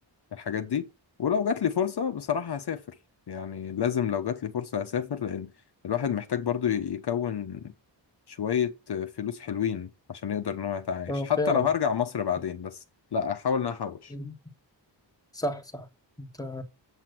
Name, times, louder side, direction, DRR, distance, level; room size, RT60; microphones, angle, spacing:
voice 1, 0.3-0.9 1.2-2.8 3.3-5.5 5.8-7.7 8.3-12.8 13.1-14.1, left 8 dB, 60° left, 1.0 m, -29 dB
voice 2, 11.1-11.7 14.1-14.3 15.3-15.9 16.2-16.6, left 1 dB, 10° left, 1.6 m, -32 dB
8.1 x 5.9 x 6.0 m
wide cardioid pair, 85°, 45 cm